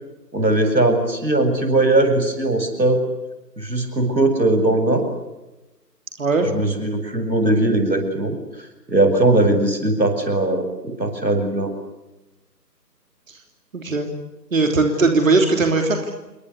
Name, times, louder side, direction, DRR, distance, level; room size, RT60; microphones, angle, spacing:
voice 1, 0.3-3.0 3.6-5.1 6.5-11.7, right 2 dB, 90° right, 7 dB, 7.3 m, -19 dB
voice 2, 6.2-6.5 13.3-13.4 13.7-14.1 14.5-16.1, right 3 dB, 50° right, 4 dB, 3.3 m, -19 dB
29.0 x 24.0 x 8.2 m, 1.0 s
figure-of-eight pair, 155°, 50 cm